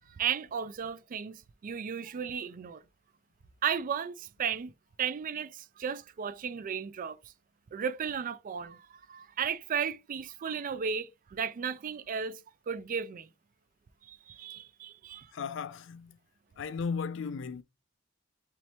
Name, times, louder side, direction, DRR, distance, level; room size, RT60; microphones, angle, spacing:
voice 1, 0.1-2.8 3.6-4.7 5.0-7.2 7.7-12.4 12.7-13.3 14.0-15.3, right 7 dB, 40° right, 0.3 m, -35 dB
voice 2, 15.3-16.2 16.6-17.6, left 5 dB, 65° left, 0.4 m, -35 dB
3.1 x 3.0 x 4.1 m
head